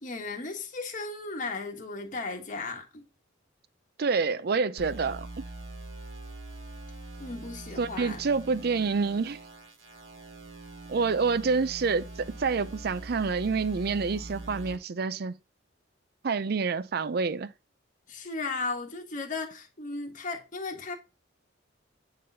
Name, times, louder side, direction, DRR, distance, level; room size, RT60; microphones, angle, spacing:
voice 1, 0.0-3.1 7.2-8.2 18.1-21.0, left 3 dB, 40° left, 1.2 m, -35 dB
voice 2, 4.0-5.3 7.8-9.4 10.9-15.4 16.2-17.5, right 4 dB, 50° right, 0.5 m, -27 dB
sound 1, 4.8-14.8, right 2 dB, 85° right, 1.5 m, -43 dB
8.5 x 4.0 x 2.7 m
head